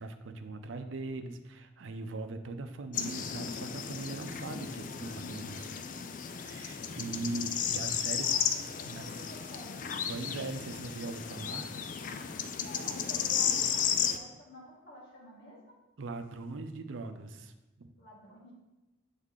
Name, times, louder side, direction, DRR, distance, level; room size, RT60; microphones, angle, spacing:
voice 1, 0.0-5.7 6.4-8.4 8.8-9.2 10.1-11.7 16.0-17.9, right 2 dB, 90° right, 7 dB, 0.5 m, -40 dB
sound 1, 2.9-14.2, left 7 dB, 40° left, 0.3 m, -34 dB
voice 2, 7.0-7.5 8.1-10.0 12.5-15.7 18.0-18.5, left 1 dB, 65° left, -5 dB, 1.8 m, -50 dB
7.3 x 3.6 x 3.7 m, 1.0 s
head